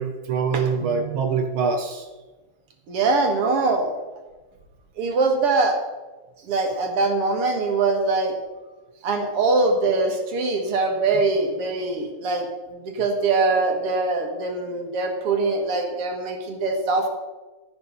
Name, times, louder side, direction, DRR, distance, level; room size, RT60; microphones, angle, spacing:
voice 1, 0.0-2.1, right 5 dB, 70° right, 5 dB, 1.7 m, -24 dB
voice 2, 2.9-3.9 5.0-5.8 6.4-8.4 9.0-17.1, right 3 dB, 90° right, 3 dB, 2.6 m, -23 dB
12.0 x 11.0 x 4.0 m, 1.2 s
omnidirectional pair, 2.4 m